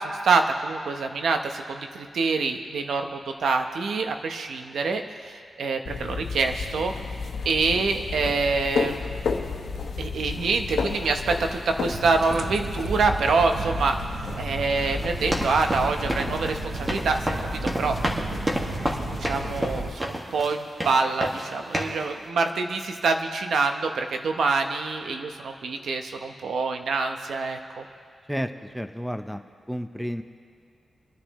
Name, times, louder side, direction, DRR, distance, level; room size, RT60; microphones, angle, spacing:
voice 1, 0.0-6.9 7.4-9.2 10.0-14.1 14.4-17.4 17.8-17.9 18.8-27.8, right 4 dB, 85° right, 5 dB, 0.9 m, -26 dB
sound 1, 5.9-19.9, left 4 dB, 80° left, 1.1 m, -33 dB
sound 2, 11.9-19.9, right 5 dB, 65° right, 0.6 m, -35 dB
sound 3, 15.0-20.6 20.8-21.5 21.7-22.0, equal, 20° right, 1.8 m, -29 dB
voice 2, 28.3-29.4 29.7-30.2, equal, ahead, 8 dB, 0.7 m, -31 dB
28.5 x 10.0 x 3.1 m, 2.5 s
cardioid pair, 85°, 0 cm